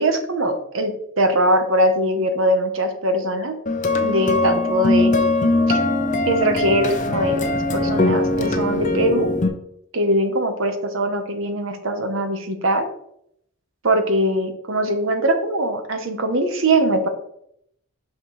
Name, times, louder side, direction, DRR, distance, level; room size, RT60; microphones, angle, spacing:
voice 1, 0.0-3.6 4.0-5.1 5.7-5.8 6.3-9.3 9.9-12.9 13.8-17.1, right 1 dB, 70° right, 6 dB, 1.0 m, -21 dB
sound 1, 3.7-9.5, left 2 dB, 40° left, 0.7 m, -20 dB
5.9 x 4.1 x 4.7 m, 0.73 s
head